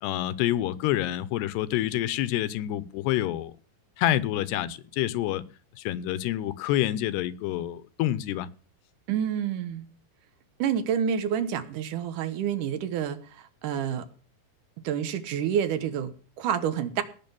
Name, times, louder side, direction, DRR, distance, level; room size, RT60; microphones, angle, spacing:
voice 1, 0.0-3.5 4.0-5.4 5.8-8.5, left 13 dB, 75° left, 2.7 m, -27 dB
voice 2, 9.1-9.8 10.6-14.1 14.8-17.0, right 8 dB, 65° right, 2.2 m, -28 dB
18.0 x 6.1 x 7.0 m
omnidirectional pair, 5.1 m